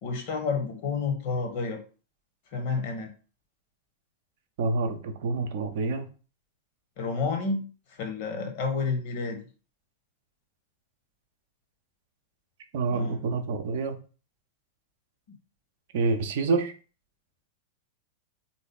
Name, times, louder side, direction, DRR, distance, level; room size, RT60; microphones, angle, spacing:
voice 1, 0.0-1.8 2.5-3.1 7.0-7.6 7.9-9.4 12.8-13.4, left 4 dB, 50° left, 4 dB, 1.0 m, -30 dB
voice 2, 4.6-6.0 12.7-13.9 15.9-16.7, right 3 dB, 55° right, 6 dB, 0.6 m, -27 dB
3.8 x 2.6 x 3.5 m, 0.36 s
figure-of-eight pair, 90°, 0 cm